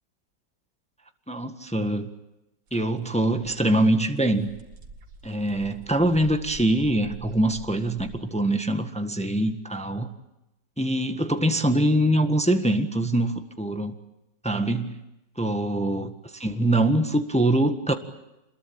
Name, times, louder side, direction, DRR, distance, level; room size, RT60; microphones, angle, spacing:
voice 1, 1.3-2.1 2.7-4.5 5.2-10.1 10.8-13.9 14.4-15.0 15.4-17.9, right 1 dB, 5° left, 7 dB, 1.4 m, -24 dB
sound 1, 2.7-2.8 3.1-8.2, right 3 dB, 80° right, 2.6 m, -46 dB
27.0 x 21.5 x 8.8 m, 0.93 s
omnidirectional pair, 1.9 m